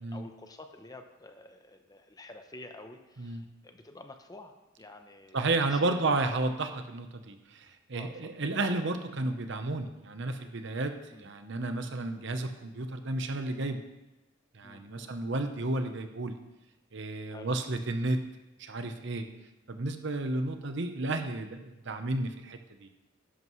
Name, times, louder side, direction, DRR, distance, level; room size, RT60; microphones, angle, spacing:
voice 1, 0.0-6.2 7.9-8.3 11.1-11.3 14.6-15.2 17.3-17.5, left 2 dB, 20° left, 6 dB, 0.8 m, -49 dB
voice 2, 5.3-13.8 14.5-16.3 16.9-18.2 18.6-19.3 19.7-22.9, right 2 dB, 65° right, 7 dB, 0.9 m, -32 dB
11.5 x 11.0 x 3.2 m, 1.0 s
head